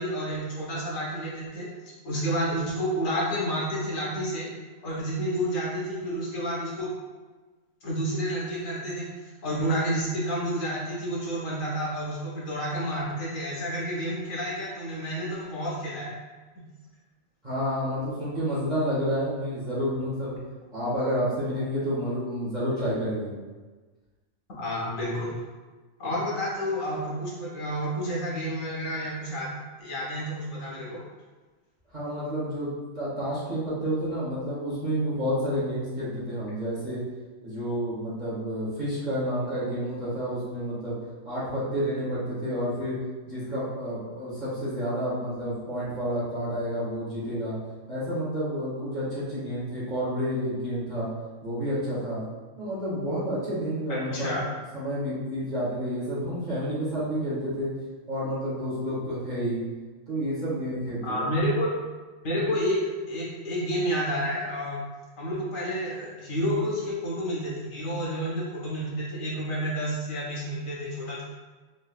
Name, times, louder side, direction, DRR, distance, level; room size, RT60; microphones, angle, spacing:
voice 1, 0.0-1.7 2.0-4.5 4.8-6.9 7.8-16.1 16.6-16.7 24.6-25.3 26.0-29.5 29.8-31.0 53.9-54.4 61.0-61.7 62.2-64.8 65.2-71.2, equal, 80° left, -5 dB, 1.5 m, -30 dB
voice 2, 17.4-20.3 20.7-23.3 31.9-37.0 37.4-41.0 41.2-43.0 43.3-47.6 47.9-51.1 51.4-52.2 52.6-54.3 54.7-57.7 58.1-59.6 60.1-61.3, equal, 35° right, -10 dB, 1.7 m, -30 dB
4.1 x 3.3 x 2.3 m, 1.3 s
omnidirectional pair, 1.4 m